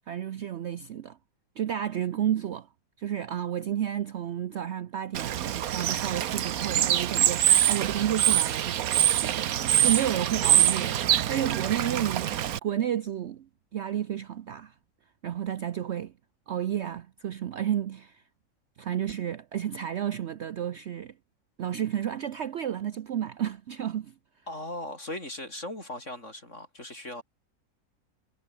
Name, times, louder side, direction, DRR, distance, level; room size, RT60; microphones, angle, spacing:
voice 1, 0.1-1.2 1.6-2.7 3.0-11.0 11.3-14.7 15.2-16.1 16.5-18.2 18.8-21.1 21.6-24.1, right 10 dB, 55° right, 0.9 m, -31 dB
Bird / Water, 5.1-12.6, right 11 dB, 75° right, 1.3 m, -25 dB
voice 2, 24.5-27.2, left 1 dB, 50° left, 8.0 m, -38 dB
omnidirectional pair, 1.6 m